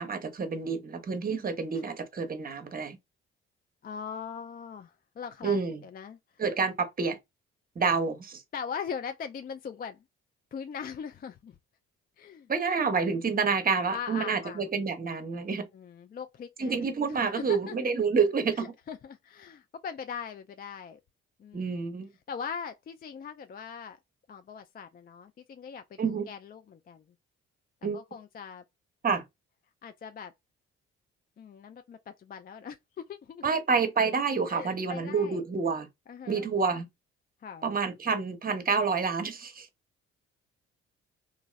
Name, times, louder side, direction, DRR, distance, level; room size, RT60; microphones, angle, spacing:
voice 1, 0.0-3.0 5.4-5.8 6.4-7.2 7.8-8.4 12.5-15.7 16.6-18.7 21.5-22.1 26.0-26.3 27.8-28.0 29.0-29.2 33.4-35.9 36.3-36.9 37.6-39.7, right 5 dB, 30° right, 0.8 m, -28 dB
voice 2, 3.8-6.2 8.5-10.0 10.5-11.6 12.2-12.5 13.9-14.7 15.7-17.7 18.6-21.0 21.4-21.9 22.3-24.0 24.3-27.0 27.9-28.6 29.8-30.3 31.4-33.4 34.5-35.4 36.1-36.5 37.4-37.7, left 7 dB, 30° left, 0.4 m, -41 dB
2.9 x 2.5 x 2.3 m
supercardioid pair, 55°, 30 cm